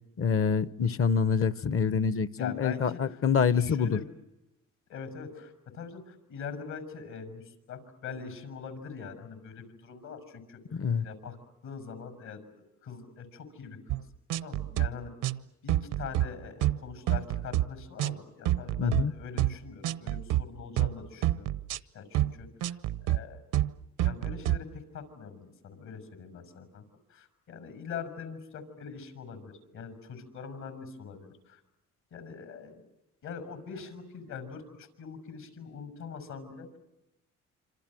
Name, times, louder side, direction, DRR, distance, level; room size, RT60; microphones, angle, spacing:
voice 1, 0.2-4.0 10.7-11.0 18.8-19.1, left 6 dB, 45° left, 17 dB, 1.0 m, -26 dB
voice 2, 2.4-3.2 3.6-4.1 4.9-11.4 11.6-14.0 14.4-15.1 15.6-21.5 21.9-22.7 23.0-23.4 24.0-26.8 27.1-31.6 32.1-32.8 33.2-36.8, left 6 dB, 75° left, 10 dB, 6.7 m, -43 dB
sound 1, 13.9-14.0 14.3-14.9 15.2-15.4 15.7-16.3 16.6-16.8 17.1-17.6 18.0-18.2 18.4-19.0 19.4-19.6 19.8-20.4 20.8-20.9 21.2-21.8 22.1-22.3 22.6-23.2 23.5-23.7 24.0-24.6, right 14 dB, 90° right, 0.9 m, -27 dB
27.0 x 26.5 x 7.7 m, 0.91 s
cardioid pair, 90°, 30 cm